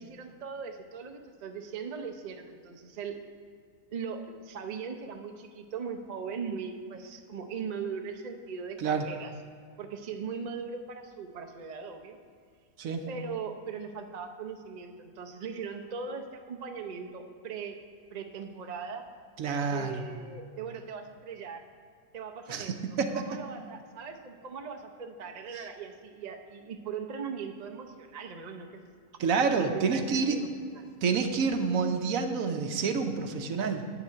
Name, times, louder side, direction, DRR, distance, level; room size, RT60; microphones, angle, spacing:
voice 1, 0.0-3.2 3.9-9.3 9.8-12.2 13.1-17.8 18.1-19.1 19.6-21.6 22.1-29.0 29.4-30.9, right 6 dB, 50° right, 5 dB, 0.5 m, -39 dB
voice 2, 19.4-20.0 22.5-23.2 25.5-25.6 29.2-30.4 31.0-33.9, right 5 dB, 65° right, 6 dB, 1.1 m, -28 dB
9.0 x 6.8 x 6.2 m, 2.2 s
omnidirectional pair, 1.7 m